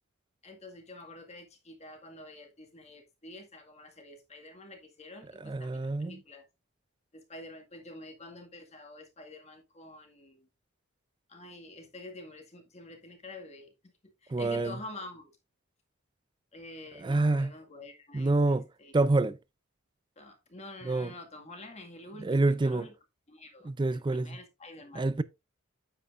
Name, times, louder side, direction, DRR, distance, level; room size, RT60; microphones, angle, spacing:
voice 1, 0.4-6.5 7.1-10.5 11.3-13.9 14.2-15.3 16.5-18.9 20.2-22.9 23.3-25.1, left 2 dB, 30° left, 1.9 m, -48 dB
voice 2, 5.4-6.2 14.3-14.7 17.0-17.5 18.1-18.7 18.9-19.4 20.9-21.1 22.2-22.9 23.7-24.4 25.0-25.2, right 2 dB, 20° right, 0.3 m, -27 dB
9.4 x 7.9 x 2.5 m
head